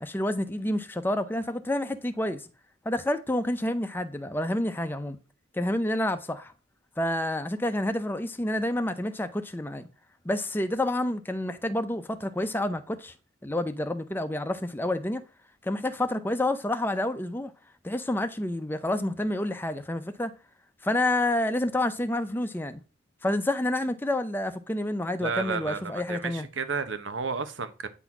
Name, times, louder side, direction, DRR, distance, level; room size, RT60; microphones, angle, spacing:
voice 1, 0.0-2.5 2.8-5.2 5.5-6.5 7.0-9.9 10.2-13.1 13.4-15.2 15.6-17.5 17.8-20.3 20.8-22.8 23.2-26.5, left 1 dB, 10° left, 0.6 m, -29 dB
voice 2, 25.2-27.9, right 5 dB, 85° right, 1.1 m, -32 dB
9.1 x 4.1 x 5.9 m
head